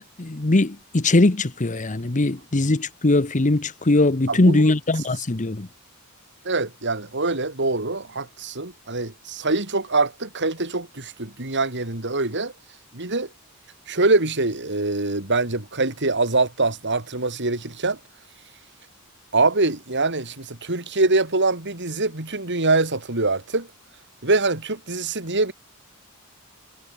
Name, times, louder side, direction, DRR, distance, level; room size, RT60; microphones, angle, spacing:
voice 1, 0.0-5.7, left 2 dB, 35° left, 1.0 m, -20 dB
voice 2, 4.3-4.6 6.4-12.5 12.9-13.3 13.9-18.0 19.3-23.7 24.2-25.5, right 3 dB, 55° right, 4.1 m, -24 dB
head